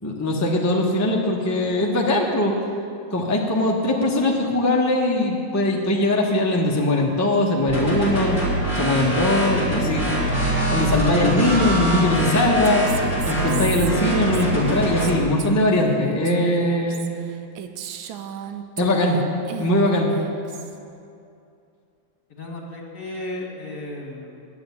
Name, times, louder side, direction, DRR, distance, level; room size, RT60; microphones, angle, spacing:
voice 1, 0.0-2.5 3.1-8.4 8.7-10.1 10.7-12.9 13.3-17.1 18.8-19.2 19.6-20.1, left 1 dB, 15° left, -2 dB, 0.7 m, -21 dB
sound 1, 7.7-15.1, right 1 dB, 40° right, 4.0 m, -24 dB
Female speech woman speaking, 12.4-19.2 19.5-20.8, right 9 dB, 80° right, 1.4 m, -36 dB
voice 2, 22.3-24.4, left 1 dB, 60° left, 0 dB, 2.1 m, -34 dB
10.0 x 7.9 x 8.4 m, 2.6 s
omnidirectional pair, 2.1 m